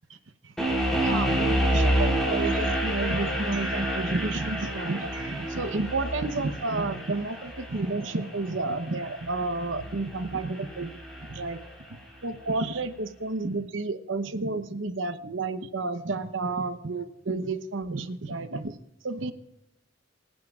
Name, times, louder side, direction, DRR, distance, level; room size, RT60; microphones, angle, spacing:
sound 1, 0.6-11.6, right 1 dB, ahead, 3.9 m, -29 dB
voice 1, 1.0-10.9 11.3-11.6 12.2-18.8 19.0-19.3, right 3 dB, 85° right, 10 dB, 0.9 m, -31 dB
24.5 x 10.0 x 2.4 m, 0.89 s
head